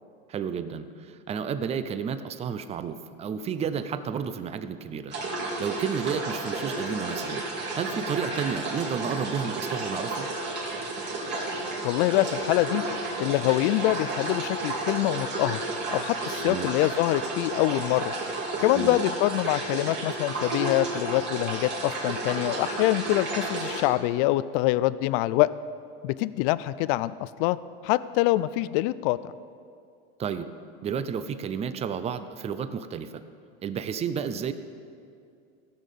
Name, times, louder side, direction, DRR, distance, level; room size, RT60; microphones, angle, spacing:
voice 1, 0.3-5.1 5.6-7.4 7.8-10.3 16.5-16.7 18.7-19.0 30.2-30.5 30.8-33.1 33.6-34.5, right 7 dB, 20° right, 11 dB, 0.5 m, -31 dB
sound 1, 5.1-23.8, right 2 dB, 35° right, 2.5 m, -32 dB
voice 2, 11.8-12.8 13.2-15.6 15.9-18.1 18.6-25.5 26.0-27.6 27.8-29.3, left 17 dB, 60° left, 17 dB, 0.4 m, -25 dB
15.5 x 6.5 x 5.4 m, 2.4 s
supercardioid pair, 130°, 30 cm